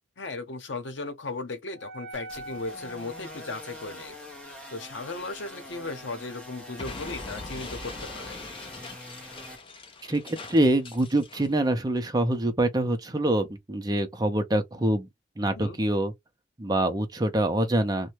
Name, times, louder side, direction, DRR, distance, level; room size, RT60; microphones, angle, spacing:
voice 1, 0.2-4.2 4.7-8.4 15.5-15.8, left 3 dB, 80° left, 0.8 m, -36 dB
Wind instrument woodwind instrument, 1.7-7.5, right 1 dB, 70° right, 0.7 m, -46 dB
sound 1, 2.1-9.6, left 1 dB, 5° left, 0.8 m, -45 dB
Explosion, 6.8-11.6, left 3 dB, 30° left, 0.4 m, -42 dB
voice 2, 10.1-15.1 15.4-16.1 16.6-18.1, right 1 dB, 20° right, 0.6 m, -25 dB
2.7 x 2.2 x 2.9 m
head